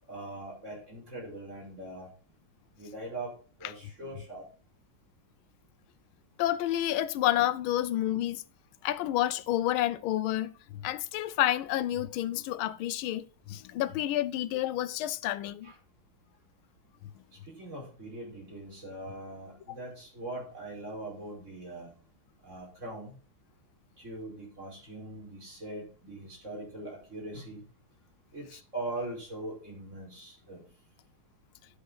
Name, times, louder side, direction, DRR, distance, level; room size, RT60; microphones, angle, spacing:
voice 1, 0.1-2.1 2.8-3.3 3.6-4.4 15.6-15.7 17.5-21.9 22.4-23.1 24.0-27.6 28.3-30.6, right 2 dB, 35° right, 5.5 m, -41 dB
voice 2, 6.4-8.4 8.8-15.7, left 13 dB, 90° left, 1.5 m, -29 dB
10.5 x 6.8 x 5.5 m
omnidirectional pair, 2.2 m